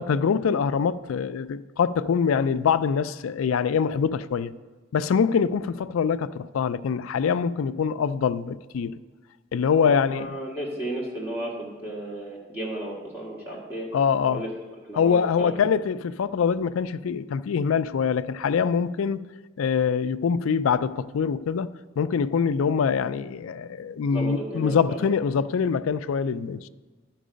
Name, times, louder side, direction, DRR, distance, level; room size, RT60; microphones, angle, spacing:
voice 1, 0.0-4.5 4.9-9.0 9.5-10.4 13.9-14.4 15.0-19.3 19.6-26.7, left 6 dB, 85° left, 0.4 m, -24 dB
voice 2, 9.8-13.9 14.3-14.5 14.8-15.7 24.1-25.1, right 1 dB, 10° right, 1.5 m, -34 dB
12.5 x 4.6 x 5.1 m
head